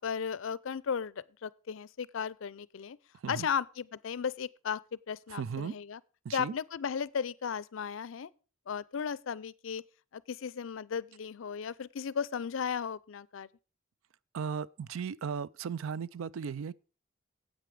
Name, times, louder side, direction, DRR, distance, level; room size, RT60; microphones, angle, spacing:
voice 1, 0.0-3.0 3.3-6.0 6.3-8.3 8.7-9.8 10.1-13.5, left 7 dB, 70° left, 0.4 m, -35 dB
voice 2, 3.1-3.5 5.3-5.8 6.2-6.5 14.3-16.7, right 6 dB, 75° right, 0.4 m, -36 dB
9.1 x 8.4 x 4.9 m
head